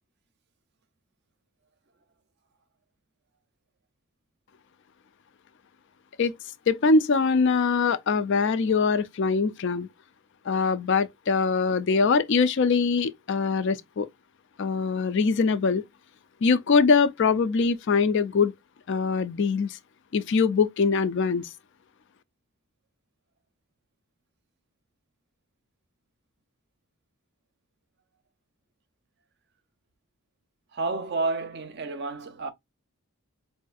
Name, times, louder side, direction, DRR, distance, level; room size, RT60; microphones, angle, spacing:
voice 1, 6.7-9.9 10.5-14.1 14.6-15.8 16.4-18.5 18.9-19.8 20.1-21.5, left 4 dB, 55° left, 0.4 m, -23 dB
voice 2, 30.7-32.5, right 3 dB, 50° right, 0.5 m, -30 dB
4.7 x 2.6 x 2.3 m
head